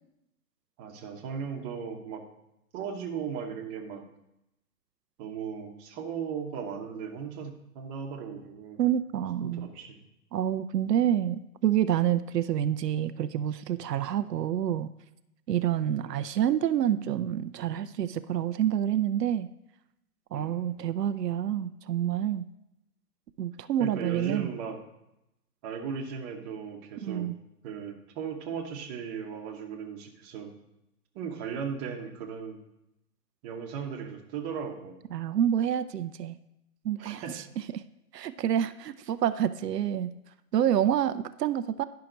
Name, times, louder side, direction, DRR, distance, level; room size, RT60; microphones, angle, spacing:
voice 1, 0.8-2.2 2.7-4.0 5.2-8.8 9.4-10.0 16.0-16.2 20.3-20.6 23.8-24.8 25.6-27.3 27.6-30.5 31.1-32.6 33.4-35.0 37.0-37.4, right 7 dB, 25° right, 2 dB, 1.0 m, -37 dB
voice 2, 8.8-9.7 10.3-14.9 15.5-19.5 20.3-22.4 23.4-24.5 27.0-27.4 35.1-36.4 36.8-37.2 37.7-37.8 38.1-40.1 40.5-41.9, right 10 dB, 85° right, 12 dB, 0.6 m, -28 dB
10.5 x 5.7 x 3.9 m, 0.87 s
hypercardioid pair, 140°, 47 cm